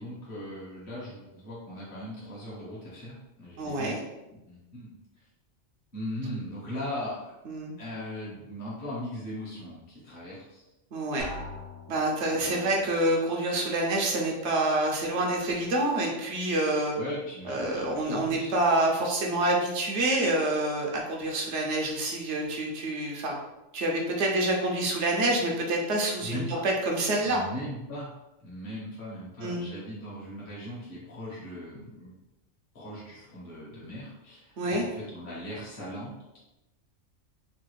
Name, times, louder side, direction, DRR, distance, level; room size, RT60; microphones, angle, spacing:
voice 1, 0.0-4.0 4.3-4.9 5.9-7.3 7.8-10.6 11.1-11.2 12.3-13.0 16.9-18.5 26.2-26.6 27.2-28.1 28.4-32.1 32.7-36.4, left 1 dB, 50° left, -7 dB, 1.2 m, -39 dB
voice 2, 3.6-4.0 7.5-7.7 10.9-11.2 11.9-17.0 17.5-23.3 23.7-27.4 29.4-29.6 34.6-34.8, right 1 dB, 70° right, 0 dB, 0.9 m, -27 dB
Drum, 11.2-12.4, left 1 dB, 75° left, 1.1 m, -41 dB
3.2 x 2.4 x 3.1 m, 0.97 s
omnidirectional pair, 1.3 m